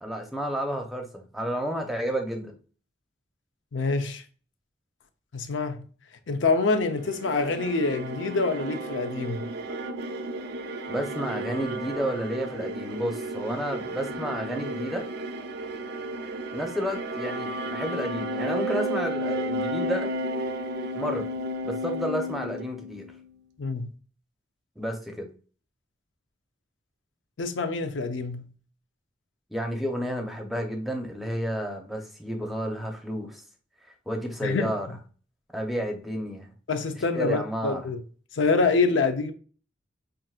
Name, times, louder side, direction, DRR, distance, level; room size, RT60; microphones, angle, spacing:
voice 1, 0.0-2.6 10.9-15.1 16.5-20.1 20.9-21.3 21.6-23.1 24.8-25.3 29.5-33.4 34.1-34.9 35.5-36.5 37.1-37.9, equal, ahead, 0.7 m, -31 dB
voice 2, 3.7-4.2 5.3-5.9 6.3-9.5 23.6-23.9 27.4-28.5 34.4-34.7 36.7-38.0 38.3-39.3, left 3 dB, 85° left, 0.6 m, -26 dB
sound 1, 6.9-23.3, right 1 dB, 55° right, 0.4 m, -33 dB
5.7 x 2.6 x 2.3 m
head